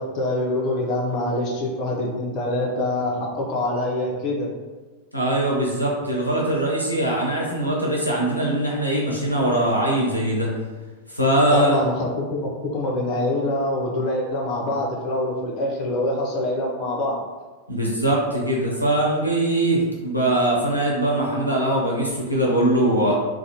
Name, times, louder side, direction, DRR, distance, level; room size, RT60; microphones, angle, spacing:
voice 1, 0.0-4.5 11.5-17.2, left 1 dB, 40° left, -2 dB, 0.5 m, -25 dB
voice 2, 5.1-10.5 11.1-11.8 17.7-23.1, right 1 dB, 90° left, -4 dB, 0.5 m, -21 dB
2.4 x 2.1 x 2.7 m, 1.3 s
figure-of-eight pair, 90°, 0 cm